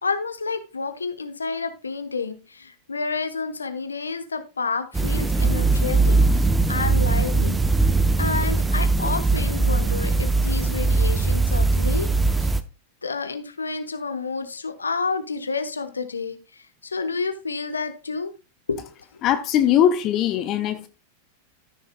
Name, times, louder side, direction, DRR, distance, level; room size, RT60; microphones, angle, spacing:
voice 1, 0.0-7.6 8.2-12.1 12.4-12.5 13.0-18.3 18.7-18.9, left 4 dB, 75° left, 0.9 m, -30 dB
sound 1, 4.9-12.6, right 3 dB, 10° right, 0.6 m, -20 dB
voice 2, 19.2-20.9, left 10 dB, 35° left, 0.6 m, -20 dB
14.0 x 6.4 x 2.2 m
figure-of-eight pair, 90°, 0 cm